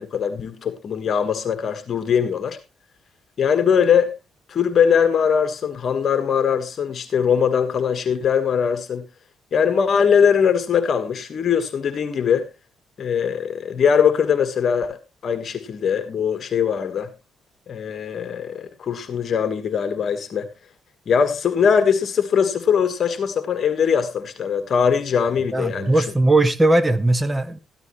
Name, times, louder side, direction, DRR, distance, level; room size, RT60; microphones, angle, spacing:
voice 1, 0.0-2.6 3.4-4.1 4.5-9.0 9.5-12.5 13.0-15.0 15.2-17.1 17.7-20.5 21.1-25.9, left 7 dB, 55° left, 1.5 m, -21 dB
voice 2, 25.5-27.6, right 2 dB, 15° right, 1.2 m, -18 dB
14.0 x 12.0 x 3.1 m
cardioid pair, 90°, 0 cm